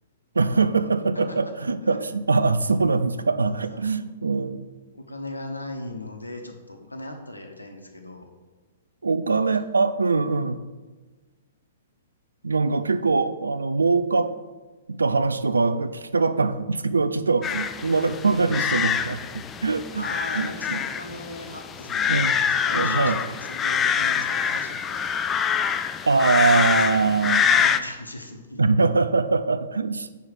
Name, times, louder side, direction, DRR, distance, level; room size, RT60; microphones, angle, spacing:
voice 1, 0.3-4.6 9.0-10.6 12.4-14.3 15.0-20.1 20.4-20.8 22.1-22.4 22.7-23.2 26.1-27.4 28.6-30.2, right 4 dB, 80° right, 12 dB, 0.4 m, -23 dB
voice 2, 1.1-1.5 3.5-3.9 4.9-8.3 9.3-9.5 19.9-25.1 27.0-28.7, left 1 dB, 90° left, 4 dB, 1.0 m, -38 dB
sound 1, 17.4-27.8, left 7 dB, 20° left, 0.4 m, -25 dB
5.5 x 4.7 x 6.0 m, 1.3 s
figure-of-eight pair, 115°, 0 cm